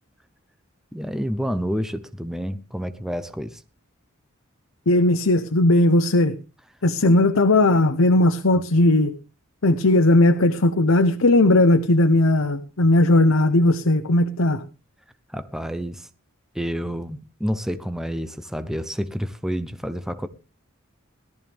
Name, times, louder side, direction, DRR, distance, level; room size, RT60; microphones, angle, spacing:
voice 1, 0.9-3.6 7.0-7.2 15.3-16.1 16.5-20.3, equal, ahead, 0.7 m, -29 dB
voice 2, 4.9-6.3 6.8-9.1 9.6-14.6, left 2 dB, 80° left, 0.9 m, -17 dB
17.5 x 13.0 x 3.5 m
head